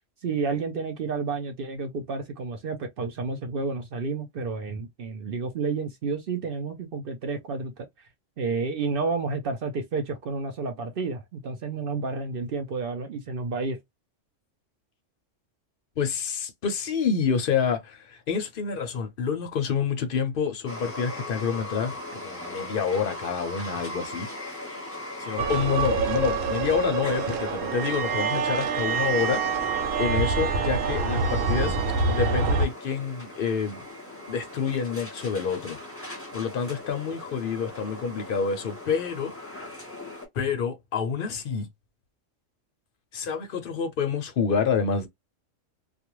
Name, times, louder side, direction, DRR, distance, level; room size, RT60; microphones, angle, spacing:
voice 1, 0.2-7.7 8.4-13.8, right 4 dB, 60° right, 0.7 m, -30 dB
voice 2, 16.0-24.3 25.2-29.4 30.0-31.8 32.1-33.8 34.3-35.8 36.3-39.3 40.3-41.7 43.1-45.1, left 6 dB, 60° left, 0.6 m, -28 dB
sound 1, 20.7-40.3, left 2 dB, 10° left, 0.9 m, -39 dB
sound 2, 25.4-32.7, right 4 dB, 85° right, 1.0 m, -26 dB
2.4 x 2.2 x 2.9 m
omnidirectional pair, 1.3 m